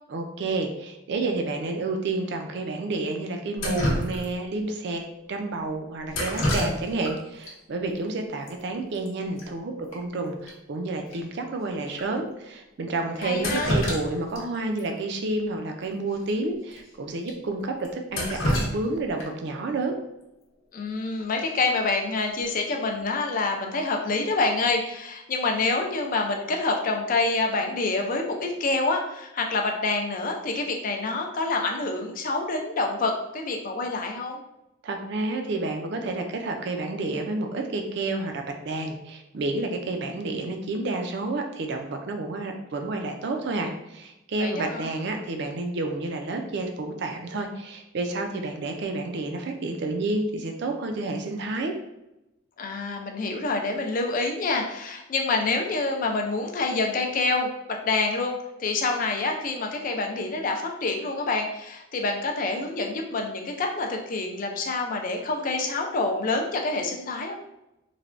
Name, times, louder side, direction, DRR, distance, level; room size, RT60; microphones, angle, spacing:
voice 1, 0.1-5.0 5.3-19.9 34.8-51.7, right 2 dB, 55° right, 4 dB, 0.4 m, -30 dB
Drip, 3.6-4.6 6.1-7.1 7.4-7.5 8.5-8.6 8.8-9.1 9.4-9.5 9.9-10.0 10.5-10.6 11.1-11.2 11.9-12.0 13.2-14.4 14.8-14.9 16.2-16.3 16.7-16.8 17.3-17.4 17.8-19.5 21.5-21.8 22.2-22.6, left 1 dB, 75° left, 0.8 m, -28 dB
voice 2, 13.2-13.7 20.7-34.4 44.4-44.9 52.6-67.4, left 3 dB, 40° left, 2 dB, 0.4 m, -27 dB
3.2 x 2.2 x 2.5 m, 0.90 s
head